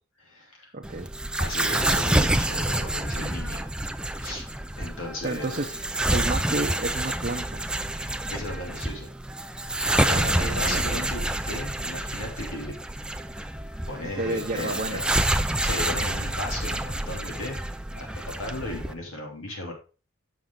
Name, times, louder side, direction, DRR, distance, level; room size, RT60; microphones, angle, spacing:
voice 1, 0.2-0.7 1.4-3.6 4.1-4.5 4.8-5.6 8.3-9.1 10.1-12.8 13.9-15.0 15.6-17.6 17.9-19.7, left 1 dB, 80° left, 0 dB, 2.7 m, -35 dB
voice 2, 0.7-1.1 5.2-7.6 9.9-10.8 14.0-15.0, right 2 dB, 40° right, 0 dB, 0.7 m, -31 dB
sound 1, 0.8-18.9, right 1 dB, 5° right, 0.4 m, -28 dB
7.3 x 6.2 x 3.7 m, 0.34 s
head